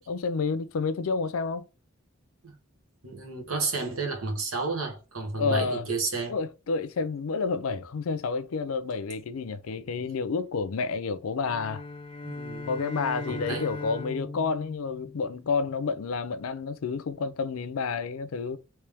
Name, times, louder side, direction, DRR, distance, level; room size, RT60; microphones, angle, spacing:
voice 1, 0.1-1.7 5.4-5.9 6.3-11.8 12.7-18.6, left 4 dB, 85° left, 0.5 m, -30 dB
voice 2, 3.0-6.3 12.2-12.8 13.3-13.7, right 3 dB, 85° right, 1.3 m, -31 dB
sound 1, 11.4-15.8, left 2 dB, 25° left, 0.5 m, -39 dB
3.2 x 3.1 x 3.4 m
head